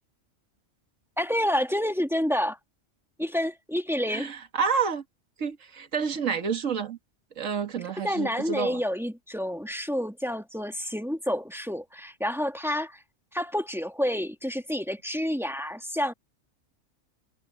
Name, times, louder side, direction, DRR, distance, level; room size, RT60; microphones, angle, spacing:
voice 1, 1.2-2.6 3.2-4.3 8.0-13.0 13.3-16.1, equal, ahead, 1.8 m, -29 dB
voice 2, 4.1-5.0 5.4-7.0 7.4-8.8, right 6 dB, 80° right, 2.0 m, -29 dB
omnidirectional pair, 1.3 m